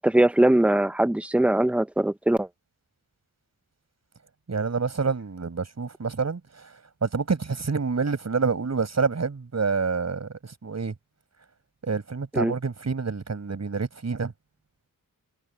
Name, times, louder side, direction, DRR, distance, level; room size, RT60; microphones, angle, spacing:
voice 1, 0.0-2.5 12.3-12.5, right 1 dB, 5° right, 0.6 m, -21 dB
voice 2, 4.5-6.4 7.0-10.9 11.8-14.3, right 5 dB, 45° right, 7.4 m, -27 dB
wide cardioid pair, 135°, 36 cm